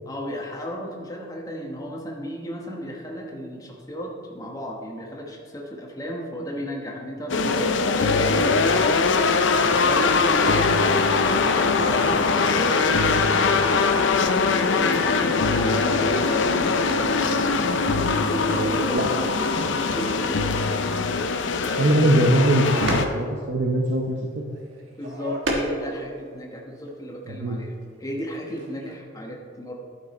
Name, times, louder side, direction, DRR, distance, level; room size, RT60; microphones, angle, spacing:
voice 1, 0.1-17.5 17.9-19.3 19.6-20.7 25.0-27.7 28.0-29.7, equal, 20° left, -1 dB, 1.1 m, -34 dB
sound 1, 7.3-23.1, left 4 dB, 75° left, 0.6 m, -21 dB
sound 2, 16.5-26.4 26.8-26.9 27.2-27.9 28.2-29.0, right 1 dB, 85° right, 1.4 m, -36 dB
voice 2, 21.8-24.5 27.3-27.6, right 1 dB, 65° right, 0 dB, 0.7 m, -22 dB
11.5 x 6.1 x 4.2 m, 2.1 s
head